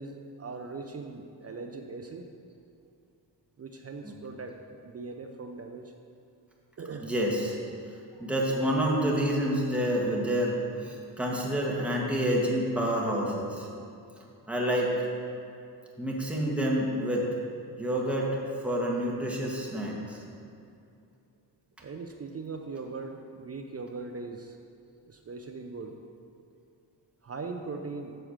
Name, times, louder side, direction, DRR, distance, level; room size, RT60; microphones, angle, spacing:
voice 1, 0.0-2.3 3.6-5.9 6.8-7.1 21.8-24.6 25.1-26.0 27.2-28.2, right 4 dB, 35° right, 4 dB, 0.6 m, -40 dB
voice 2, 7.0-7.6 8.2-13.7 14.5-14.9 16.0-17.3 17.8-20.2, equal, 5° right, -3 dB, 1.7 m, -28 dB
7.5 x 4.6 x 6.5 m, 2.6 s
cardioid pair, 70°, 44 cm